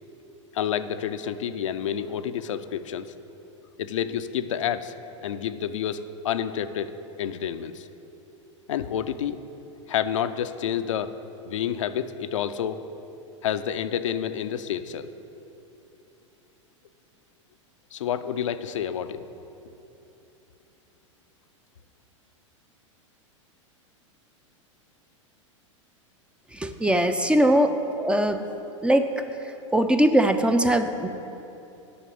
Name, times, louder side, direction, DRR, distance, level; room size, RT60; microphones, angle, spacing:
voice 1, 0.5-3.1 3.8-4.9 5.2-6.9 7.2-7.9 8.7-9.4 9.9-11.1 11.4-12.8 13.4-15.1 17.9-19.2, left 9 dB, 75° left, 10 dB, 0.5 m, -29 dB
voice 2, 26.6-27.7 28.0-28.4 28.8-29.1 29.7-31.1, right 1 dB, 5° right, 8 dB, 0.5 m, -20 dB
7.9 x 5.8 x 7.7 m, 2.9 s
hypercardioid pair, 100°, 16 cm